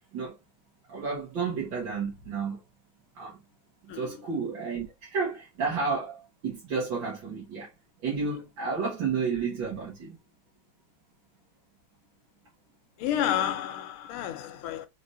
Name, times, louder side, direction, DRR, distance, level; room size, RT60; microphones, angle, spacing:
voice 1, 0.9-2.6 3.2-3.4 3.9-7.7 8.0-10.2, right 5 dB, 65° right, 2.0 m, -31 dB
voice 2, 3.9-4.2 13.0-14.9, left 10 dB, 90° left, 1.5 m, -30 dB
4.2 x 3.5 x 2.5 m
omnidirectional pair, 2.3 m